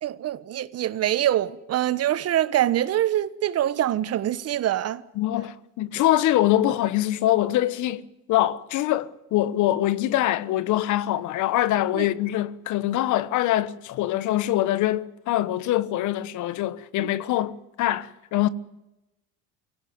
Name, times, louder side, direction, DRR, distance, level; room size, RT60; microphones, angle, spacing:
voice 1, 0.0-5.0 11.9-12.1 17.0-17.1, right 12 dB, 45° right, 1.3 m, -24 dB
voice 2, 5.2-8.0 8.3-18.5, left 14 dB, 60° left, 1.3 m, -24 dB
24.0 x 17.0 x 9.4 m
supercardioid pair, 100°, 34 cm